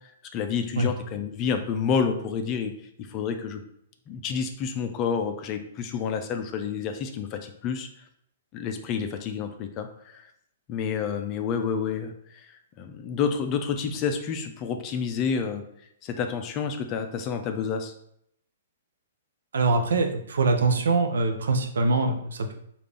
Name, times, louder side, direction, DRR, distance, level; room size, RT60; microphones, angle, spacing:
voice 1, 0.3-2.7 3.0-3.6 4.1-7.9 8.5-10.2 10.7-15.6 16.0-17.9, left 6 dB, 35° left, 6 dB, 0.5 m, -29 dB
voice 2, 19.5-22.5, right 3 dB, 75° right, 5 dB, 0.6 m, -23 dB
4.9 x 2.5 x 3.4 m, 0.72 s
hypercardioid pair, 125°, 0 cm